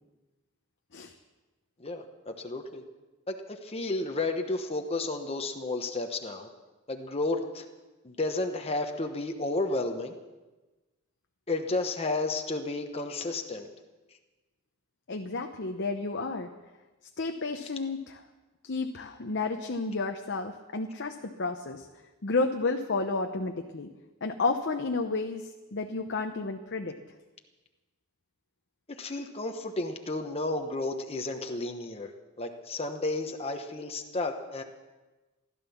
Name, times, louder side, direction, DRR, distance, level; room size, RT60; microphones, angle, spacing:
voice 1, 1.8-2.8 3.3-6.5 6.9-7.6 8.0-10.1 11.5-13.7 28.9-32.1 32.4-34.6, left 2 dB, 30° left, 4 dB, 1.0 m, -32 dB
voice 2, 15.1-16.5 17.2-18.2 18.6-21.9 22.2-23.9 24.2-26.9, left 3 dB, 55° left, 5 dB, 0.9 m, -31 dB
16.0 x 12.0 x 7.1 m, 1.2 s
head